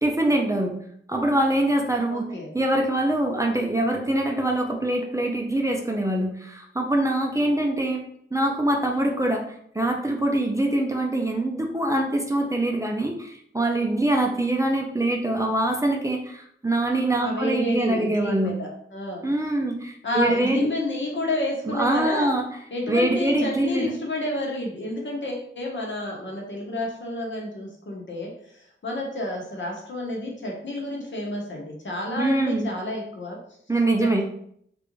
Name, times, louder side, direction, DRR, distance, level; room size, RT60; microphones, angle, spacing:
voice 1, 0.0-0.7 1.1-2.2 2.5-8.0 8.3-9.4 9.7-18.5 19.2-20.7 21.6-22.4 22.9-23.9 32.2-32.7 33.7-34.2, right 1 dB, 15° right, 1 dB, 0.4 m, -24 dB
voice 2, 2.1-2.5 17.2-19.3 20.0-22.3 22.7-33.4 34.0-34.2, left 1 dB, 65° left, -1 dB, 0.9 m, -30 dB
3.3 x 2.5 x 3.0 m, 0.68 s
wide cardioid pair, 100°, 21 cm